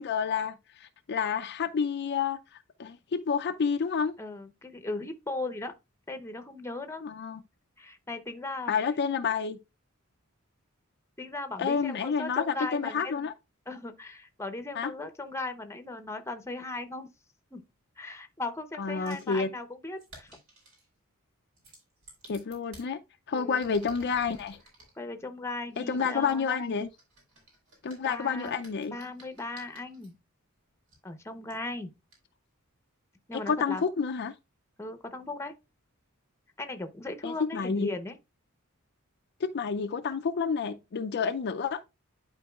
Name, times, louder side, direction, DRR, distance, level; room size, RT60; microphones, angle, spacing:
voice 1, 0.0-2.4 2.8-4.1 7.0-7.4 8.7-9.6 11.6-13.3 14.7-14.9 18.8-19.5 22.3-23.0 23.3-24.6 25.8-26.9 27.8-29.0 33.5-34.3 37.2-37.9 39.4-41.8, left 6 dB, 50° left, 0.4 m, -29 dB
voice 2, 4.2-5.7 6.1-7.0 7.8-8.7 11.2-13.3 13.7-17.1 17.5-17.6 18.0-20.4 23.3-23.6 25.0-26.5 28.0-28.6 28.9-30.1 31.0-31.9 33.3-33.8 34.8-35.5 36.6-38.2, left 2 dB, 15° left, 0.8 m, -37 dB
sound 1, 19.1-19.3 20.0-20.9 21.6-22.9 23.5-24.9 25.7-30.1 30.9-31.0 31.5-31.6 32.1-32.2, right 2 dB, 75° right, 4.6 m, -54 dB
11.5 x 4.5 x 2.3 m
head